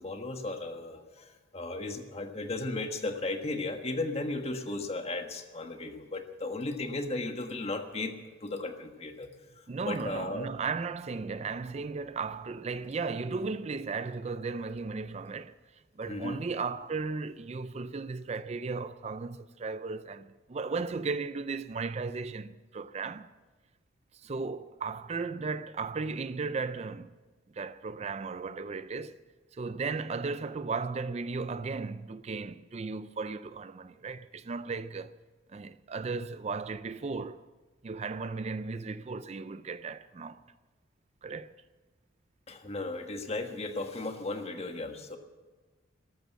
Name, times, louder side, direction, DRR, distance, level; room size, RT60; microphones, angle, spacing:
voice 1, 0.0-8.1 8.4-9.3 9.9-10.4 16.0-16.4 42.5-45.2, left 2 dB, 35° left, 1.5 m, -35 dB
voice 2, 9.7-15.5 16.0-23.3 24.1-27.1 27.5-29.2 29.5-35.2 35.5-37.4 37.8-40.4 41.2-41.5, right 4 dB, 35° right, 0.4 m, -35 dB
13.5 x 12.5 x 8.1 m
head